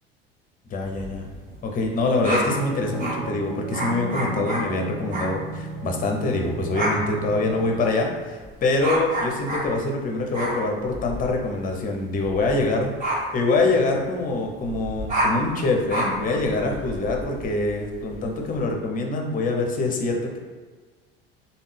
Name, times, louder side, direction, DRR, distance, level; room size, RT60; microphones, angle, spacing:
voice 1, 0.7-1.2 1.6-12.9 13.3-20.4, left 3 dB, 30° left, 2 dB, 0.6 m, -25 dB
sound 1, 0.8-3.2 3.7-5.4 5.7-6.0 6.2-18.6, right 1 dB, 25° right, 1.2 m, -30 dB
sound 2, 2.5-7.9, right 4 dB, 70° right, 0.5 m, -34 dB
3.4 x 2.2 x 3.3 m, 1.4 s
figure-of-eight pair, 65°, 30 cm